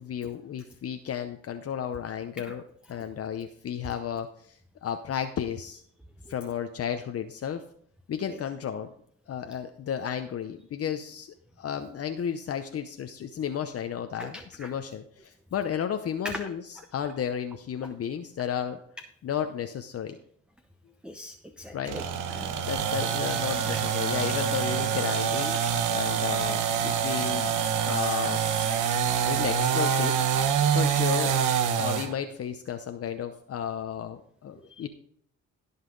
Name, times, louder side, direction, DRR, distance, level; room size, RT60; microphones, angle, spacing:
voice 1, 0.0-2.6 2.9-5.8 6.3-7.6 8.1-8.9 9.3-18.8 19.2-20.2 21.7-22.0 22.6-25.6 25.9-27.5 27.9-28.4 29.2-30.1 30.7-31.4 31.8-34.9, left 8 dB, 50° left, 7 dB, 0.8 m, -33 dB
voice 2, 14.2-14.7 16.2-16.3 21.0-22.0 22.4-22.5 34.8-34.9, left 1 dB, 5° right, 5 dB, 0.8 m, -41 dB
sound 1, 21.6-30.2, right 2 dB, 25° right, 4.2 m, -45 dB
sound 2, 21.9-32.1, right 8 dB, 80° right, 1.1 m, -26 dB
16.5 x 5.6 x 3.9 m, 0.65 s
cardioid pair, 90°, 30 cm